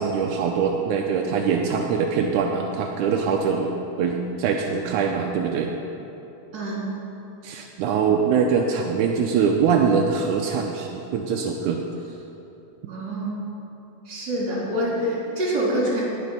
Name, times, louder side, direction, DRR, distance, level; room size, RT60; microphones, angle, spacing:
voice 1, 0.0-5.7 7.4-11.8, right 6 dB, 80° right, 2 dB, 1.8 m, -23 dB
voice 2, 6.5-6.9 12.8-13.5 14.0-16.0, right 1 dB, 30° right, -5 dB, 3.2 m, -26 dB
18.5 x 6.2 x 5.4 m, 2.9 s
omnidirectional pair, 4.1 m